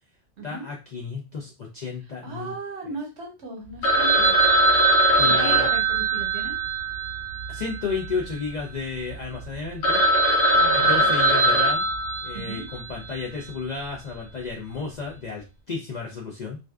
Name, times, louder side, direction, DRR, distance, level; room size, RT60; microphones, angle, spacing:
voice 1, 0.4-2.5 5.2-5.7 7.5-10.0 10.7-11.8 12.2-16.6, left 4 dB, 60° left, -1 dB, 0.4 m, -32 dB
voice 2, 2.2-4.3 5.2-6.5 10.5-11.2 12.3-12.6, right 2 dB, 70° right, 1 dB, 1.0 m, -36 dB
Telephone, 3.8-8.2 8.4-8.5 9.1-9.2 9.5-9.6 9.8-12.8, right 1 dB, 80° left, 1.0 m, -21 dB
2.5 x 2.1 x 2.3 m, 0.27 s
omnidirectional pair, 1.2 m